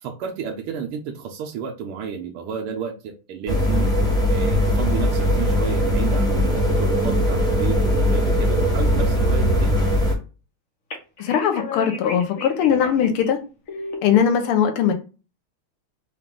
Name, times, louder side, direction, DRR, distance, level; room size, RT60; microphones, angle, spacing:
voice 1, 0.0-3.9 4.3-9.8, right 7 dB, 85° right, 1 dB, 1.5 m, -31 dB
sound 1, 3.5-10.1, left 1 dB, 5° left, 0.7 m, -20 dB
sound 2, 6.5-8.7 10.9-13.3 13.7-13.9, right 2 dB, 50° left, 1.1 m, -31 dB
voice 2, 11.2-13.4 14.0-14.9, left 8 dB, 85° left, 6 dB, 1.6 m, -20 dB
4.7 x 2.4 x 3.6 m, 0.33 s
omnidirectional pair, 2.4 m